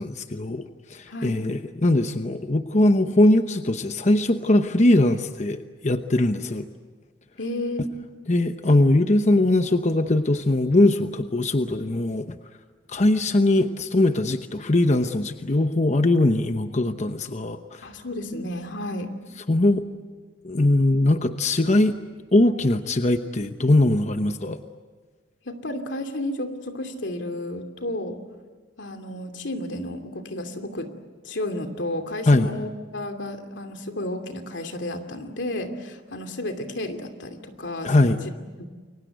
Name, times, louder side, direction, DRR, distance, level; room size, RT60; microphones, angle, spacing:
voice 1, 0.0-6.7 8.3-12.4 12.9-17.8 19.5-19.9 20.4-22.0 22.3-24.6 32.3-32.5 37.8-38.2, left 1 dB, 40° left, 8 dB, 0.9 m, -21 dB
voice 2, 1.1-1.4 7.4-7.9 17.8-19.1 25.4-28.2 28.8-30.9 31.2-38.2 38.6-38.7, left 1 dB, 90° left, 6 dB, 2.7 m, -32 dB
29.5 x 23.0 x 8.1 m, 1.4 s
head